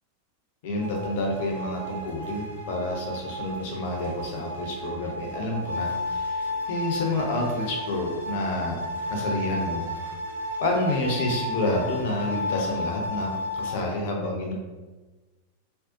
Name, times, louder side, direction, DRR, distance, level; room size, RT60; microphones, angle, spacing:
voice 1, 0.6-8.8 9.1-10.2 10.6-14.5, left 2 dB, 50° left, 0 dB, 0.5 m, -29 dB
sound 1, 0.8-13.9, left 1 dB, 80° right, 0.5 m, -33 dB
2.5 x 2.0 x 2.4 m, 1.2 s
figure-of-eight pair, 90°, 0 cm